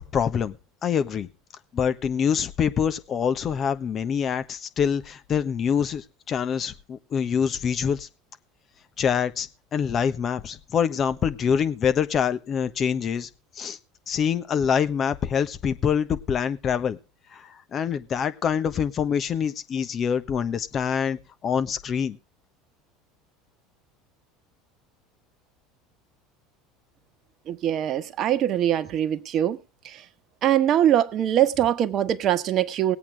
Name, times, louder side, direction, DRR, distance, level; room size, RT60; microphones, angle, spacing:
voice 1, 0.1-0.6 0.8-1.3 1.7-8.1 9.0-13.3 13.6-13.8 14.1-17.0 17.3-22.2, left 7 dB, 40° left, 1.3 m, -25 dB
voice 2, 27.5-29.6 29.8-30.0 30.4-33.0, right 11 dB, 50° right, 1.2 m, -22 dB
20.0 x 8.6 x 3.5 m
hypercardioid pair, 80°, 0 cm